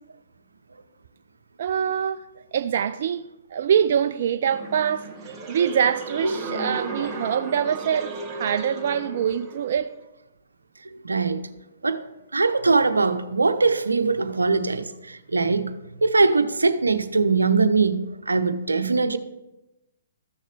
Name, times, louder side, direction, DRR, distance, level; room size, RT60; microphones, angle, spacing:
voice 1, 1.6-2.2 2.5-9.9, right 8 dB, 55° right, 0.4 m, -24 dB
sound 1, 4.5-9.8, right 3 dB, 15° right, 2.1 m, -35 dB
voice 2, 10.8-11.5 11.8-12.0 12.3-15.7 16.0-19.2, right 4 dB, 85° right, 0.7 m, -22 dB
14.0 x 6.4 x 3.3 m
figure-of-eight pair, 130°, 0 cm